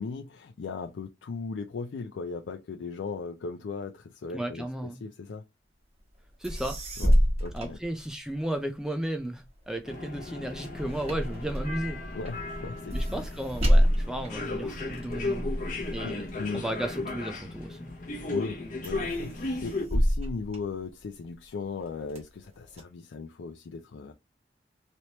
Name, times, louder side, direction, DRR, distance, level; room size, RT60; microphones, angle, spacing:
voice 1, 0.0-5.4 7.0-7.2 7.4-7.8 12.1-13.2 16.0-16.6 18.2-24.1, left 4 dB, 90° left, 0.4 m, -37 dB
voice 2, 4.3-5.0 6.4-6.8 7.5-12.0 12.9-15.5 15.9-16.2 16.5-17.9, right 1 dB, 5° right, 0.3 m, -34 dB
sound 1, 6.2-6.3 6.4-8.5 9.0-17.7 18.2-18.5 18.8-21.3 21.8-22.8, equal, 35° right, 1.3 m, -28 dB
sound 2, 9.8-19.9, left 2 dB, 45° left, 0.8 m, -36 dB
3.2 x 2.9 x 2.7 m
head